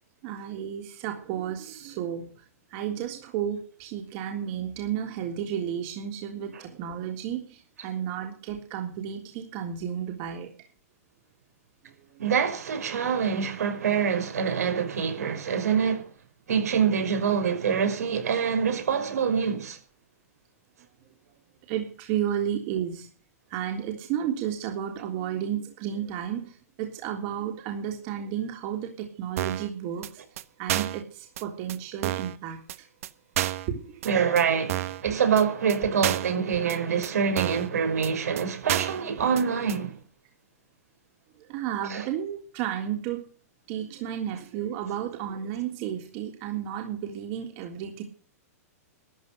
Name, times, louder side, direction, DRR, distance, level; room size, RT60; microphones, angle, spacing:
voice 1, 0.2-2.4 2.7-10.7 12.1-12.2 21.7-23.1 23.5-30.2 30.6-32.8 33.7-34.1 41.4-43.3 43.7-48.0, right 9 dB, 45° right, 3.4 m, -32 dB
voice 2, 12.2-16.1 16.5-19.8 34.0-40.0 41.9-42.1, right 7 dB, 80° right, 5.5 m, -25 dB
sound 1, 29.4-29.7 30.0-30.1 30.4-30.5 30.7-31.0 31.4-31.5 31.7-31.8 32.0-32.4 32.7-32.8 33.0-33.1 33.4-33.7 34.0-34.1 34.4-34.5 34.7-35.0 35.4-35.5 35.7-35.8 36.0-36.4 36.7-36.8 37.0-37.1 37.4-37.7 38.0-38.1 38.4-38.5 38.7-39.0 39.4-39.5 39.7-39.8, right 14 dB, 65° right, 1.3 m, -29 dB
13.5 x 12.0 x 6.7 m
hypercardioid pair, 130°, 8 cm